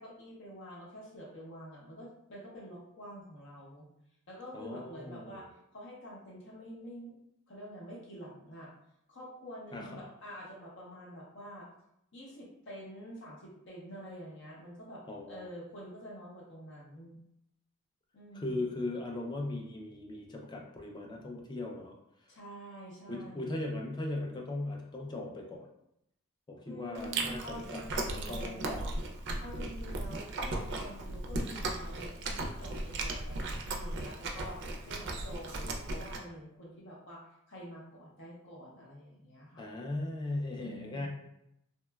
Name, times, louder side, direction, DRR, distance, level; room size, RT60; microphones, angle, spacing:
voice 1, 0.0-3.8 4.3-5.5 5.7-7.1 7.5-8.7 9.1-11.7 12.1-15.0 15.3-17.2 18.1-19.0 22.3-23.6 26.6-28.9 29.4-39.7 40.5-41.1, equal, 60° left, -4 dB, 0.7 m, -47 dB
voice 2, 4.5-5.5 9.7-10.0 15.1-15.5 18.3-22.0 23.1-25.7 26.5-28.6 39.6-41.1, left 2 dB, 20° left, 0 dB, 0.4 m, -38 dB
Chewing mastication, 26.9-36.2, right 2 dB, 55° right, 0.4 m, -36 dB
2.9 x 2.1 x 2.2 m, 0.79 s
head